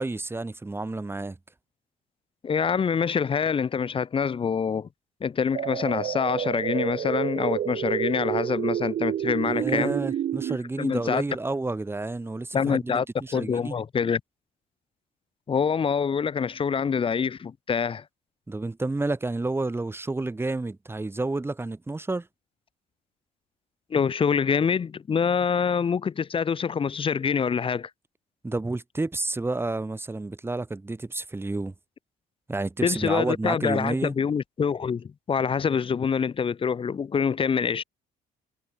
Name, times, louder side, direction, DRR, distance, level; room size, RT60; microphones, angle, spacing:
voice 1, 0.0-1.4 9.4-13.7 18.5-22.3 28.4-31.7 32.5-34.1, right 2 dB, 15° right, 3.4 m, -30 dB
voice 2, 2.4-4.9 5.2-9.9 10.8-11.2 12.5-13.0 13.3-14.2 15.5-18.0 23.9-27.9 32.8-37.8, left 6 dB, 30° left, 1.1 m, -25 dB
sound 1, 5.5-10.6, right 10 dB, 55° right, 2.0 m, -29 dB
cardioid pair, 110°, 17 cm